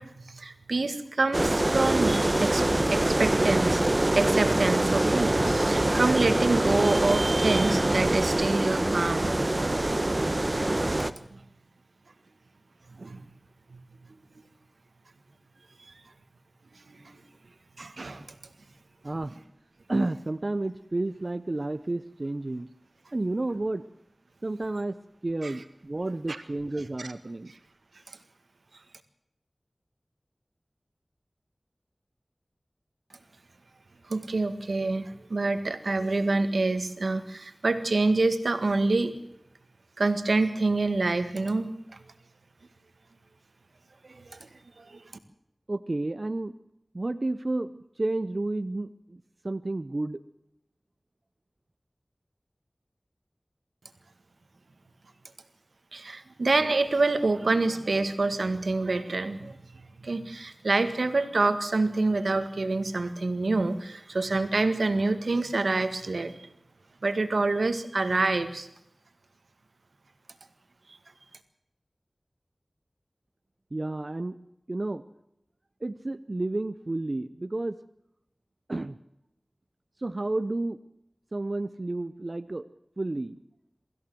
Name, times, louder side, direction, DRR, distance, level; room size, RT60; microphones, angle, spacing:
voice 1, 0.0-3.8 4.2-9.3 13.0-13.2 13.7-13.8 16.9-17.2 17.8-18.3 25.4-25.5 26.3-26.4 27.0-27.1 34.1-39.1 40.0-41.7 44.0-44.5 44.8-45.0 55.9-59.6 60.0-66.5 67.0-68.7, right 3 dB, 90° right, 10 dB, 1.8 m, -27 dB
sound 1, 1.3-11.1, right 1 dB, 40° right, 1.3 m, -24 dB
voice 2, 19.0-19.3 19.9-22.7 23.1-23.8 24.4-27.5 45.7-46.5 46.9-50.2 73.7-74.4 74.7-75.0 75.8-77.8 78.7-79.0 80.0-80.8 81.3-82.7 83.0-83.4, right 2 dB, 55° right, 11 dB, 0.8 m, -31 dB
24.0 x 14.5 x 7.8 m, 0.82 s
wide cardioid pair, 40°, 0 cm